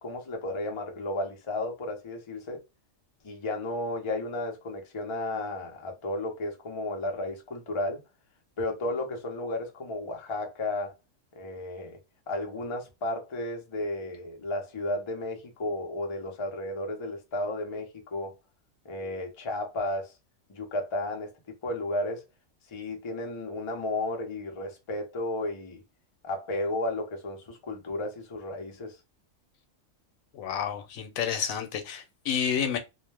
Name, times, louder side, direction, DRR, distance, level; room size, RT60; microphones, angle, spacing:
voice 1, 0.0-2.6 3.2-8.0 8.6-10.9 11.3-12.0 12.3-18.4 18.8-20.1 20.5-21.3 21.6-22.2 22.7-25.8 26.2-29.0, left 1 dB, 35° left, 0.5 m, -33 dB
voice 2, 30.3-32.8, left 8 dB, 85° left, 1.0 m, -30 dB
2.4 x 2.2 x 3.1 m
omnidirectional pair, 1.4 m